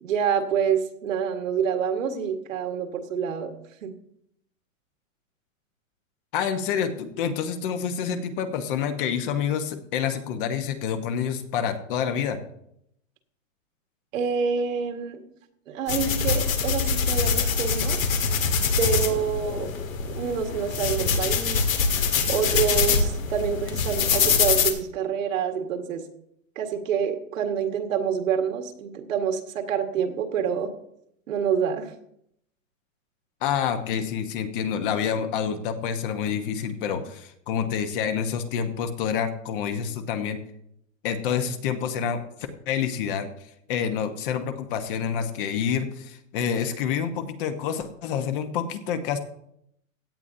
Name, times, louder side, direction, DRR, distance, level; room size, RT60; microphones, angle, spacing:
voice 1, 0.0-3.5 3.8-3.9 14.1-15.2 15.7-18.0 18.8-19.7 20.0-21.6 22.3-26.0 26.6-30.7 31.3-31.9, right 7 dB, 75° right, 5 dB, 1.9 m, -27 dB
voice 2, 6.3-12.4 33.4-40.4 41.0-42.2 42.7-43.3 43.7-49.2, left 7 dB, 40° left, 8 dB, 1.2 m, -28 dB
sound 1, 15.9-24.7, left 5 dB, 80° left, 1.9 m, -24 dB
16.5 x 9.8 x 2.8 m, 0.74 s
hypercardioid pair, 155°, 40 cm